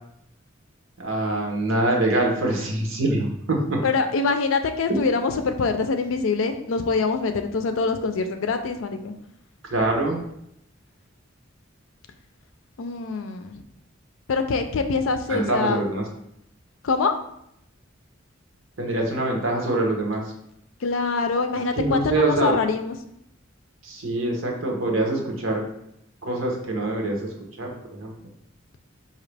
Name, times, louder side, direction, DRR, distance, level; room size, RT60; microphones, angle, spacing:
voice 1, 1.0-3.8 9.7-10.2 15.3-16.0 18.8-20.2 21.7-22.5 23.8-25.6 26.2-27.2 27.6-28.1, right 2 dB, 75° right, 0 dB, 1.0 m, -24 dB
voice 2, 3.8-9.1 12.8-13.6 14.3-15.9 16.8-17.1 20.8-22.9, left 4 dB, 75° left, 7 dB, 0.5 m, -24 dB
4.9 x 2.8 x 3.3 m, 0.77 s
head